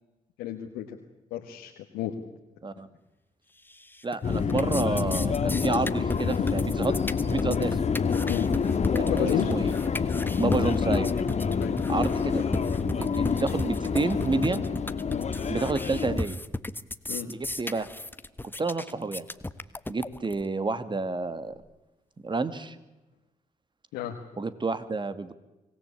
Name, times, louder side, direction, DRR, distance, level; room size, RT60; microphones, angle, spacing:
voice 1, 0.4-1.0 1.3-2.1 6.4-6.5 8.3-8.5 9.1-9.5 11.6-11.8 15.1-15.3 17.1-17.3 23.9-24.2, left 11 dB, 80° left, 2 dB, 1.7 m, -32 dB
sound 1, 3.7-4.2 4.4-20.4, left 2 dB, 15° left, 1.4 m, -35 dB
voice 2, 4.0-6.9 7.3-7.8 8.9-9.7 10.4-11.1 11.9-12.4 12.8-14.6 15.5-16.4 17.3-17.9 18.6-19.2 19.9-21.5 22.2-22.8 24.4-25.3, right 3 dB, 30° right, 12 dB, 2.3 m, -29 dB
Subway metro underground, 4.2-16.2, left 6 dB, 45° left, 1.7 m, -27 dB
24.5 x 18.0 x 8.5 m, 1.0 s
hypercardioid pair, 45°, 16 cm